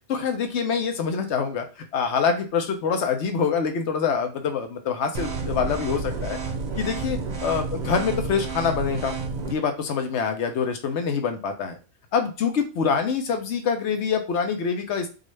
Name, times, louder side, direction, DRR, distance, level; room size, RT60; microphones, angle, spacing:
voice 1, 0.1-1.6 1.9-6.4 6.8-9.1 9.5-11.8 12.1-15.1, left 6 dB, 85° left, 6 dB, 1.0 m, -25 dB
sound 1, 5.1-9.5, right 4 dB, 45° right, 0.6 m, -30 dB
3.9 x 2.4 x 3.1 m, 0.33 s
omnidirectional pair, 1.1 m